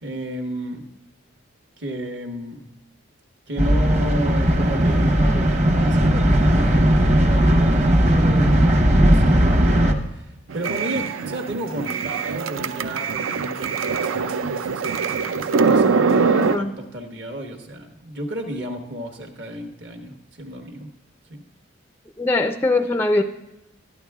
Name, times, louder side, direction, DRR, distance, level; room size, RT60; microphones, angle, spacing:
voice 1, 0.0-0.8 1.8-2.6 3.5-20.9 21.3-21.4, equal, 55° right, 3 dB, 1.3 m, -33 dB
sound 1, 3.6-9.9, equal, 35° right, 1.0 m, -17 dB
sound 2, 10.5-16.6, right 5 dB, 80° right, 0.5 m, -23 dB
voice 2, 16.3-16.7 22.2-23.2, left 2 dB, 10° left, 8 dB, 0.3 m, -21 dB
12.5 x 11.0 x 3.6 m, 0.90 s
head